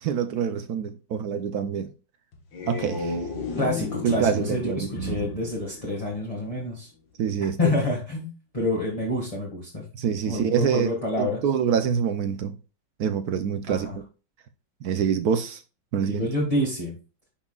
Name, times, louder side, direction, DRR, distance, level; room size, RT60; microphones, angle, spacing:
voice 1, 0.0-1.9 2.7-3.2 4.0-5.2 7.2-7.6 9.9-12.5 13.0-13.9 14.8-15.6 15.9-16.3, right 7 dB, 65° right, 1.0 m, -26 dB
sound 1, 2.3-6.5, left 4 dB, 70° left, 2.0 m, -34 dB
voice 2, 3.6-6.9 7.6-9.8 10.3-11.4 13.7-14.0 16.1-17.0, left 1 dB, 20° left, 1.8 m, -28 dB
9.9 x 5.9 x 2.3 m
omnidirectional pair, 2.1 m